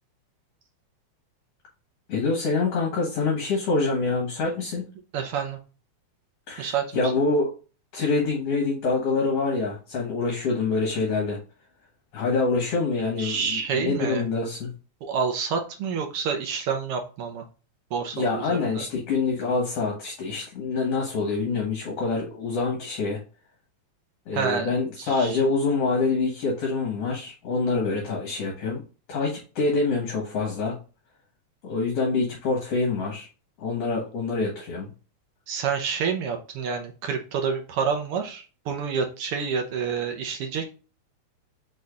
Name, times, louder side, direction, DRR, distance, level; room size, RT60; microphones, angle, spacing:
voice 1, 2.1-4.8 6.5-7.5 7.9-11.4 12.1-14.7 18.1-23.2 24.3-28.8 29.1-30.8 31.6-33.3 33.6-34.9, left 3 dB, 60° left, -1 dB, 2.1 m, -26 dB
voice 2, 5.1-5.6 6.6-7.1 13.2-14.2 15.0-17.4 17.9-18.8 24.3-25.4 35.5-40.7, right 6 dB, 70° right, 4 dB, 1.4 m, -28 dB
5.1 x 4.3 x 2.3 m, 0.34 s
omnidirectional pair, 3.4 m